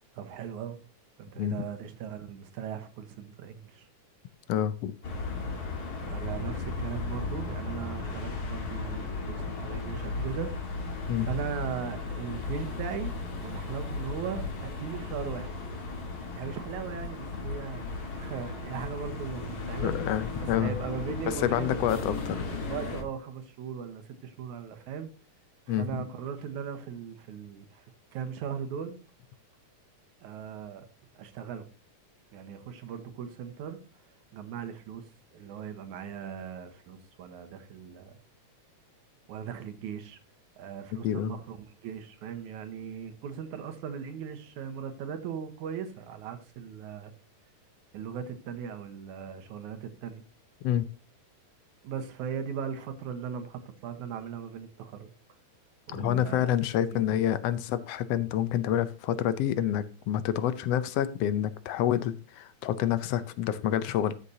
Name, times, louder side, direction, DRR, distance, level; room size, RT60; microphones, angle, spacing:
voice 1, 0.1-0.8 1.2-3.9 6.1-10.5 11.1-15.5 16.4-19.9 20.4-21.9 22.7-25.1 25.7-27.9 28.1-29.0 30.2-30.8 31.1-31.7 32.3-33.8 34.3-35.0 35.3-38.2 39.3-40.2 40.6-47.1 47.9-50.2 51.8-55.1 55.9-56.6 56.9-57.0, right 7 dB, 85° right, 8 dB, 2.6 m, -38 dB
voice 2, 4.5-4.9 11.1-11.3 19.8-20.7 21.3-22.5 25.7-25.9 41.0-41.3 50.6-50.8 55.9-64.1, left 11 dB, 75° left, 14 dB, 1.5 m, -28 dB
sound 1, 5.0-23.0, left 3 dB, 35° left, 2.0 m, -35 dB
13.0 x 7.0 x 2.8 m, 0.35 s
omnidirectional pair, 3.4 m